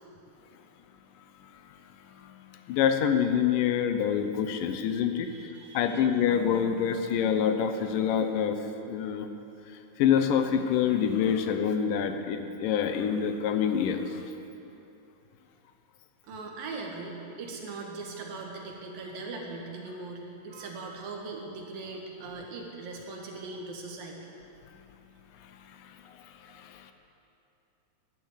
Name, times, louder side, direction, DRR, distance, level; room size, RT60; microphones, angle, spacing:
voice 1, 2.7-5.3 5.7-8.6 8.9-9.3 10.0-14.2 26.5-26.9, left 8 dB, 80° left, 7 dB, 2.4 m, -26 dB
voice 2, 5.2-6.0 16.2-24.3, right 3 dB, 80° right, 0 dB, 3.5 m, -40 dB
12.0 x 11.5 x 8.4 m, 2.8 s
omnidirectional pair, 4.0 m